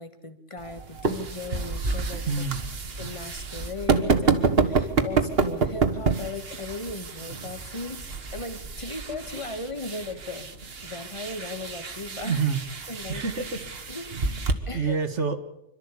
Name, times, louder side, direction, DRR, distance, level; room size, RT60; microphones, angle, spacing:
voice 1, 0.0-2.3 3.0-10.6 10.8-12.4 12.9-13.2 13.9-14.1 14.7-15.0, left 3 dB, 25° left, 9 dB, 1.6 m, -37 dB
sound 1, 0.6-14.5, right 4 dB, 55° right, 1.6 m, -28 dB
voice 2, 2.2-2.6 12.2-12.6 13.1-14.0 14.7-15.4, right 5 dB, 80° right, 8 dB, 2.0 m, -28 dB
26.5 x 13.0 x 8.4 m, 0.88 s
omnidirectional pair, 1.2 m